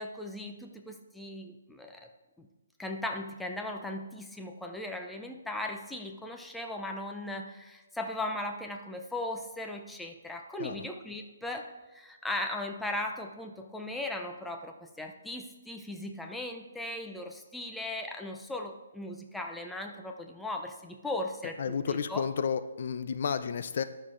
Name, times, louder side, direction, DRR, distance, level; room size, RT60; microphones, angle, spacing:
voice 1, 0.0-2.1 2.4-2.5 2.8-22.2, left 1 dB, 5° left, 3 dB, 0.5 m, -38 dB
voice 2, 21.6-23.8, left 6 dB, 50° left, 12 dB, 0.5 m, -31 dB
11.5 x 6.4 x 3.8 m, 1.1 s
hypercardioid pair, 165°, 0 cm